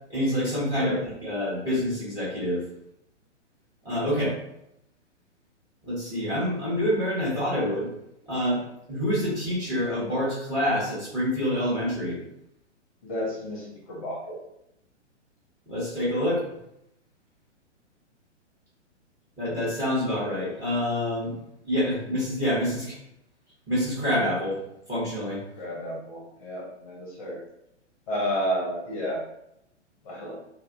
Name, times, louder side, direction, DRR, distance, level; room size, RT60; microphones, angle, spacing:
voice 1, 0.1-2.6 3.8-4.3 5.8-7.9 8.3-8.6 8.9-12.2 15.7-16.4 19.4-21.3 21.6-23.0 23.7-24.6 24.9-25.4, equal, 10° right, -9 dB, 0.6 m, -27 dB
voice 2, 13.0-14.4 25.6-27.4 28.1-29.2 30.0-30.4, equal, 30° left, -4 dB, 0.6 m, -31 dB
2.5 x 2.0 x 2.4 m, 0.80 s
figure-of-eight pair, 115°, 36 cm